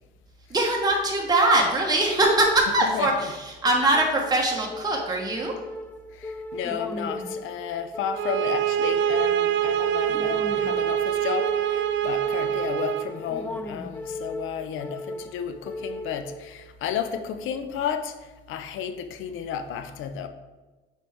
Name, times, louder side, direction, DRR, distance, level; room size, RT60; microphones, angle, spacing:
voice 1, 0.5-3.3 3.6-5.5, right 2 dB, 20° right, 1.2 m, -22 dB
voice 2, 2.8-3.3 6.1-20.3, left 8 dB, 85° left, 0.6 m, -32 dB
sound 1, 3.6-16.6, left 1 dB, 10° left, 0.5 m, -37 dB
sound 2, 8.1-13.1, right 10 dB, 70° right, 0.4 m, -25 dB
7.0 x 4.6 x 3.6 m
cardioid pair, 90°, 20 cm